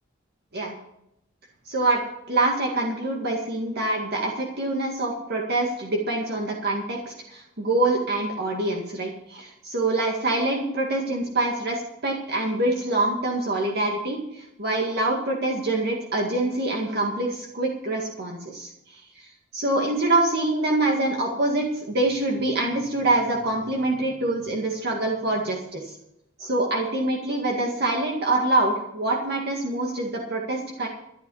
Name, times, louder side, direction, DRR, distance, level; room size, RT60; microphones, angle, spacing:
voice 1, 1.7-2.0 2.3-19.3 19.5-26.0 26.4-30.9, right 2 dB, 55° right, 0 dB, 2.0 m, -25 dB
13.0 x 11.0 x 5.6 m, 0.81 s
head